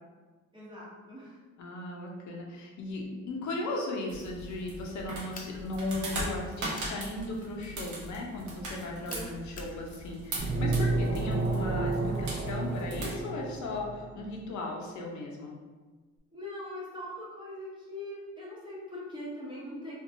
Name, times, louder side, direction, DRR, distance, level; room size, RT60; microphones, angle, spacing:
voice 1, 0.5-1.4 9.1-9.3 16.3-20.0, left 1 dB, 15° right, -7 dB, 0.8 m, -41 dB
voice 2, 1.6-15.5, left 2 dB, 70° left, 0 dB, 0.7 m, -37 dB
sound 1, 4.1-13.1, right 1 dB, 70° right, 0.8 m, -40 dB
sound 2, 5.3-5.6 6.7-7.0 9.1-9.8, left 3 dB, 30° left, 0.5 m, -46 dB
sound 3, 10.4-14.1, right 3 dB, 35° right, 0.5 m, -30 dB
2.8 x 2.5 x 2.6 m, 1.3 s
cardioid pair, 90°, 30 cm